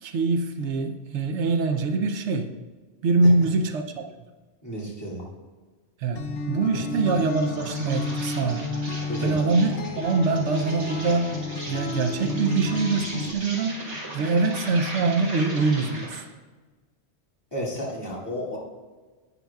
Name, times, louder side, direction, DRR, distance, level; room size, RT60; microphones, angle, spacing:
voice 1, 0.0-2.5 3.0-4.0 6.0-8.7 9.2-11.4 11.6-13.8 14.1-16.2, right 3 dB, 80° right, 6 dB, 1.0 m, -24 dB
voice 2, 4.6-5.3 9.1-9.4 17.5-18.6, equal, 20° left, -6 dB, 2.3 m, -32 dB
Acoustic guitar, 6.1-13.3, left 3 dB, 85° left, 1.0 m, -32 dB
Insect, 6.9-16.3, right 1 dB, 55° right, 2.2 m, -38 dB
11.0 x 9.0 x 2.3 m, 1.3 s
omnidirectional pair, 1.2 m